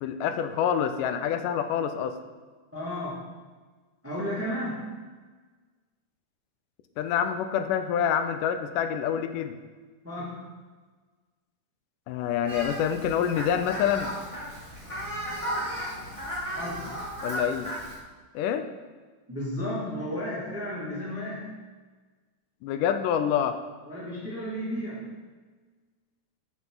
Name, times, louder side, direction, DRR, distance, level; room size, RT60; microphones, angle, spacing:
voice 1, 0.0-2.2 7.0-9.6 12.1-14.1 17.2-17.7 18.3-18.7 22.6-23.6, left 8 dB, 85° left, 9 dB, 2.2 m, -27 dB
voice 2, 2.7-3.4 4.0-5.0 10.0-10.5 16.5-17.0 19.3-21.6 23.8-25.2, equal, 5° right, -6 dB, 1.5 m, -33 dB
Fowl, 12.5-18.0, equal, 20° left, 1.0 m, -35 dB
13.0 x 6.2 x 3.9 m, 1.4 s
omnidirectional pair, 3.7 m